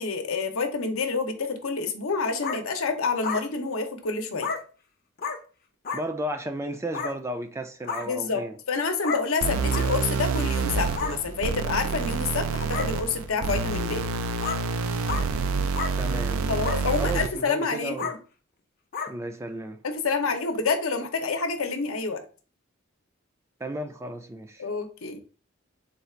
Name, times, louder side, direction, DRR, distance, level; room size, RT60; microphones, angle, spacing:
voice 1, 0.0-4.5 8.0-14.0 16.5-18.1 19.8-22.2 24.6-25.2, left 4 dB, 85° left, 0.7 m, -28 dB
sound 1, 2.4-2.6 3.2-3.4 4.4-4.6 5.2-5.4 5.8-6.0 6.9-7.1 7.8-8.1 9.0-9.2 9.7-9.9 10.9-11.1 12.0-12.1 12.7-12.9 13.5-13.6 14.4-14.6 15.1-15.2 15.7-15.9 16.6-16.8 17.3-17.5 18.0-18.1 18.9-19.1, left 5 dB, 45° left, 0.6 m, -31 dB
voice 2, 5.9-8.6 16.0-16.7 17.0-18.1 19.1-19.8 23.6-24.7, right 1 dB, 15° right, 0.3 m, -34 dB
sound 2, 9.4-17.4, right 4 dB, 90° right, 0.4 m, -28 dB
4.0 x 2.4 x 4.3 m
head